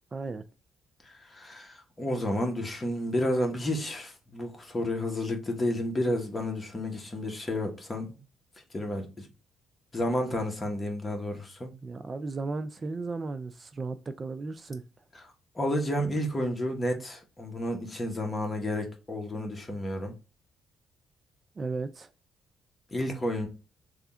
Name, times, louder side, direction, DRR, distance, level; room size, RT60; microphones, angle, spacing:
voice 1, 0.1-0.4 11.8-14.8 21.6-22.1, right 3 dB, 35° right, 0.3 m, -35 dB
voice 2, 1.0-8.2 8.7-9.3 9.9-11.7 15.1-20.1 22.9-23.5, left 1 dB, 25° left, 1.2 m, -31 dB
3.4 x 2.4 x 4.2 m
cardioid pair, 90°, 0 cm